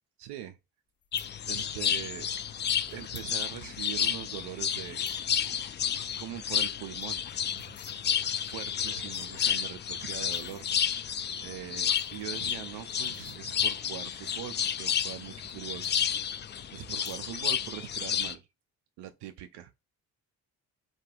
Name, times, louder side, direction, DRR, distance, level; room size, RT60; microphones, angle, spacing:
voice 1, 0.2-0.6 1.5-2.3 2.8-5.2 6.2-7.7 8.4-11.1 11.4-16.1 16.7-18.5 19.0-19.7, right 13 dB, 65° right, 0.5 m, -42 dB
sound 1, 1.0-1.3 2.3-2.4 2.9-3.3 3.7-3.8 4.0-4.2 4.7-5.3 5.6-5.8 6.1-6.2 6.5-6.6 6.8-8.0 8.6-8.7 9.0-9.6 10.1-10.6 11.6-13.8 14.5-15.6 15.8-16.5 16.9-17.5 17.8-18.2, left 7 dB, 55° left, 1.1 m, -54 dB
sound 2, 1.1-18.3, left 8 dB, 25° left, 0.4 m, -31 dB
2.3 x 2.2 x 2.9 m
hypercardioid pair, 45°, 44 cm